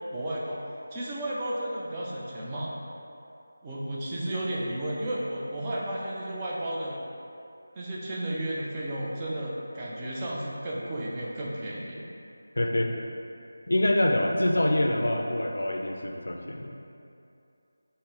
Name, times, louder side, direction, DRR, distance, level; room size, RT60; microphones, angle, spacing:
voice 1, 0.1-0.6 0.9-2.7 3.6-7.0 7.8-12.0, right 1 dB, 20° right, -6 dB, 0.4 m, -33 dB
voice 2, 12.6-12.9 13.7-16.7, left 1 dB, 75° left, 2 dB, 0.4 m, -25 dB
3.6 x 2.0 x 3.8 m, 2.7 s
figure-of-eight pair, 170°, 0 cm